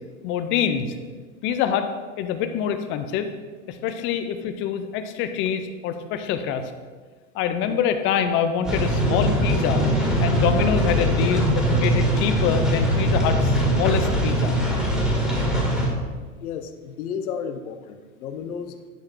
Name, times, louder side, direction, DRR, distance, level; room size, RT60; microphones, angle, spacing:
voice 1, 0.2-0.9 1.4-1.9 2.2-3.3 3.7-6.6 7.3-9.8 10.2-14.6, left 8 dB, 30° left, 9 dB, 0.5 m, -25 dB
sound 1, 8.6-15.9, equal, ahead, 1.9 m, -21 dB
voice 2, 16.4-18.9, left 7 dB, 80° left, 8 dB, 1.0 m, -33 dB
10.5 x 4.8 x 4.5 m, 1.4 s
supercardioid pair, 135°, 43 cm